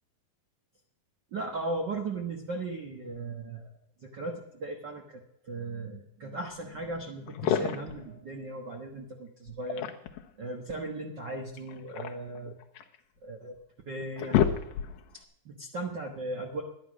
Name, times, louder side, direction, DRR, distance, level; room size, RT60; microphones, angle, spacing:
voice 1, 1.3-3.7 4.0-9.9 10.4-12.5 13.2-13.5 13.9-14.5 15.1-16.6, right 2 dB, 90° right, 2 dB, 0.9 m, -37 dB
sound 1, 6.8-6.9 7.3-8.0 9.5-10.3 11.6-13.0 13.5-13.6 14.0-15.1, left 9 dB, 80° left, 2.7 m, -29 dB
11.5 x 10.5 x 6.2 m, 0.78 s
omnidirectional pair, 4.1 m